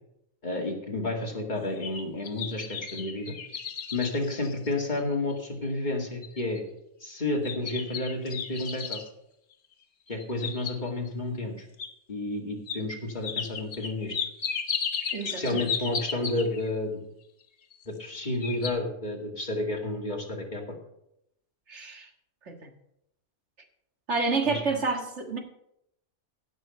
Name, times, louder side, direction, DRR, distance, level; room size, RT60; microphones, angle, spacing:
voice 1, 0.4-3.3 3.9-6.6 7.0-9.0 10.1-11.7 12.1-14.2 15.4-17.0 17.9-20.8 24.5-24.6, left 2 dB, 40° left, 0 dB, 2.4 m, -31 dB
sound 1, 1.6-5.1 5.6-5.7 6.2-6.6 7.4-9.1 10.1-11.1 11.8-11.9 12.7-12.8 13.2-16.7 17.7-18.1 18.4-18.7, left 6 dB, 90° left, 1.5 m, -34 dB
voice 2, 15.1-15.6 21.7-22.1 22.5-22.7 24.1-25.4, right 4 dB, 65° right, 3 dB, 2.1 m, -29 dB
16.5 x 6.8 x 5.6 m, 0.79 s
omnidirectional pair, 1.3 m